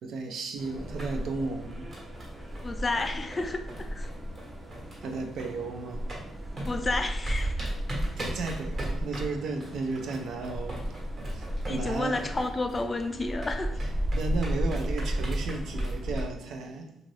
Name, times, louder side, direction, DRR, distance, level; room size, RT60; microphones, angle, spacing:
voice 1, 0.0-1.9 5.0-6.0 8.2-12.2 14.1-17.0, right 3 dB, 75° right, 0.4 m, -34 dB
sound 1, 0.6-16.3, right 1 dB, 20° right, 0.6 m, -47 dB
sound 2, 0.7-5.6 5.9-16.2, right 1 dB, 45° right, 1.1 m, -33 dB
voice 2, 2.6-4.1 6.7-7.7 11.7-13.8, left 2 dB, 30° left, 0.3 m, -31 dB
2.7 x 2.4 x 3.1 m
cardioid pair, 90°, 0 cm